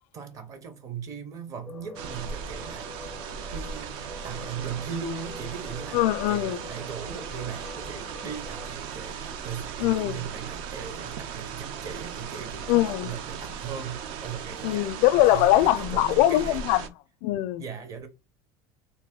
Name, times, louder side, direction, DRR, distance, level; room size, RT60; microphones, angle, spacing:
voice 1, 0.1-3.2 3.5-15.0 15.3-16.7 17.6-18.1, right 7 dB, 35° right, 0.9 m, -38 dB
sound 1, 1.7-8.8, left 4 dB, 5° left, 0.5 m, -45 dB
sound 2, 2.0-16.9, right 7 dB, 60° right, 0.6 m, -37 dB
voice 2, 5.9-6.6 9.8-10.2 12.7-13.1 14.6-16.9 17.2-17.6, left 15 dB, 65° left, 0.4 m, -22 dB
3.4 x 2.6 x 3.7 m
cardioid pair, 160°, 10 cm